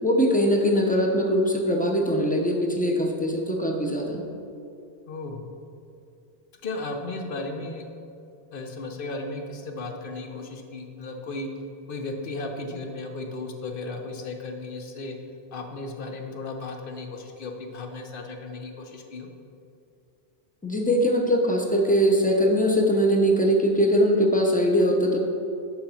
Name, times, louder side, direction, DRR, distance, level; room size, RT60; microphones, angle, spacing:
voice 1, 0.0-4.2 20.6-25.2, equal, 10° left, 1 dB, 0.7 m, -21 dB
voice 2, 5.1-5.5 6.6-7.9 8.5-11.5 11.9-15.2 15.5-19.3, left 2 dB, 55° left, 4 dB, 0.9 m, -35 dB
6.4 x 5.9 x 5.7 m, 2.6 s
omnidirectional pair, 1.2 m